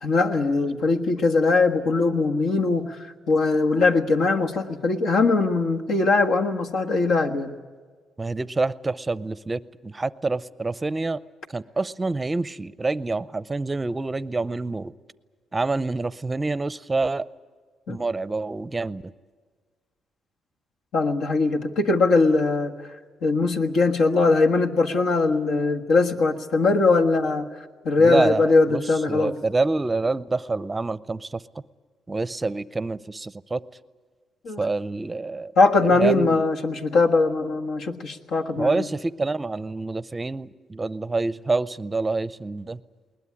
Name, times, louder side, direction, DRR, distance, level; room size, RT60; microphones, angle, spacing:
voice 1, 0.0-7.5 17.9-18.0 20.9-22.7 23.2-27.5 27.8-29.3 34.4-34.6 35.6-38.9, left 3 dB, 75° left, 3 dB, 1.5 m, -21 dB
voice 2, 8.2-11.2 11.5-14.9 15.5-17.3 17.9-19.1 28.0-28.8 29.1-31.4 32.1-33.6 34.6-35.5 35.9-36.5 38.6-42.8, right 3 dB, 20° right, 17 dB, 0.6 m, -27 dB
21.0 x 19.5 x 9.8 m, 1.5 s
cardioid pair, 90°, 0 cm